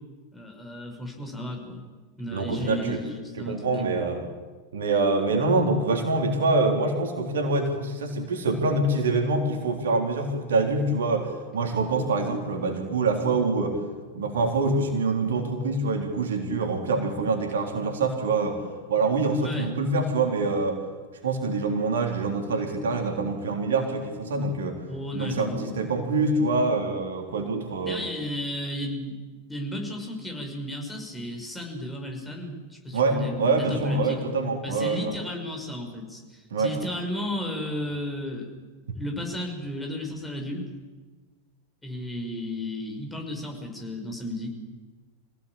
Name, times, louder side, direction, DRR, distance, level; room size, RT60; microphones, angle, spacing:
voice 1, 0.3-1.9 2.2-3.9 19.4-19.7 24.9-25.8 27.8-29.2 29.5-34.2 34.6-38.5 38.9-40.6 41.8-44.5, left 1 dB, 10° left, 1 dB, 5.6 m, -33 dB
voice 2, 2.3-3.0 3.4-4.2 4.7-13.8 14.1-18.6 18.9-20.8 21.2-24.8 25.1-28.0 32.9-35.1 36.5-36.7, right 3 dB, 65° right, 3 dB, 3.7 m, -25 dB
26.0 x 17.0 x 8.8 m, 1.4 s
figure-of-eight pair, 90°, 0 cm